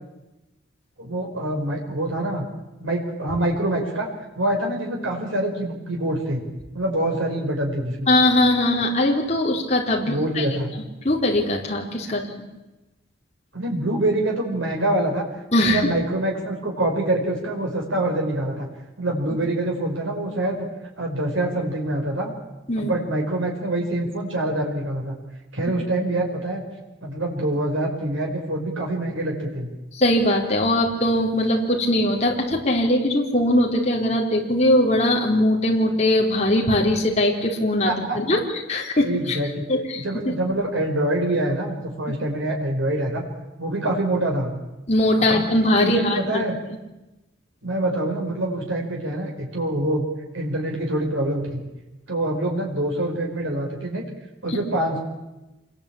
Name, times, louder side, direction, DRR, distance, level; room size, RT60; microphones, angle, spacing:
voice 1, 1.0-2.4 2.8-4.1 4.4-6.4 6.7-8.1 10.0-10.7 12.1-12.2 13.5-15.2 15.7-18.7 19.0-20.7 21.0-22.3 22.8-25.1 25.5-26.6 27.0-29.7 37.9-38.4 39.0-39.6 39.9-43.2 43.6-44.5 45.3-45.5 45.8-46.6 47.6-50.0 50.3-51.6 52.1-54.0 54.4-55.0, right 1 dB, 85° right, 0 dB, 5.0 m, -25 dB
voice 2, 8.1-10.4 11.0-12.5 15.5-15.8 22.7-22.9 29.9-38.4 38.7-39.4 39.7-40.4 44.9-46.4 54.5-54.6, left 1 dB, 35° left, 0 dB, 4.3 m, -21 dB
27.0 x 21.5 x 8.8 m, 1.0 s
head